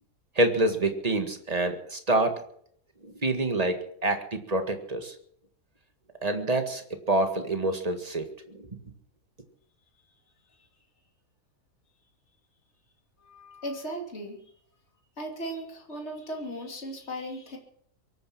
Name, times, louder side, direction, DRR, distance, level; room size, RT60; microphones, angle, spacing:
voice 1, 0.4-2.4 3.0-3.8 4.0-5.1 6.2-8.7, right 2 dB, 25° right, 6 dB, 1.8 m, -27 dB
voice 2, 13.2-14.4 15.2-17.6, right 1 dB, 45° left, 1 dB, 3.1 m, -37 dB
23.0 x 9.4 x 6.0 m, 0.64 s
omnidirectional pair, 1.7 m